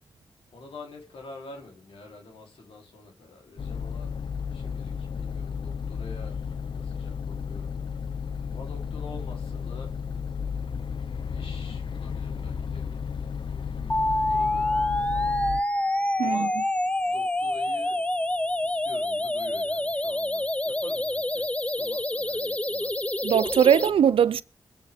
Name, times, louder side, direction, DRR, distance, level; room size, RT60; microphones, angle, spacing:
voice 1, 0.5-4.2 4.5-6.4 6.7-7.7 8.5-10.0 11.3-15.4 16.2-16.6 17.0-18.1 18.6-22.9, left 3 dB, 85° left, 3.4 m, -47 dB
sound 1, 3.6-15.6, left 6 dB, 65° left, 0.7 m, -33 dB
sound 2, 13.9-23.9, left 1 dB, 15° left, 0.6 m, -27 dB
voice 2, 23.2-24.4, right 8 dB, 85° right, 0.5 m, -20 dB
22.5 x 7.9 x 3.5 m
cardioid pair, 50°, 9 cm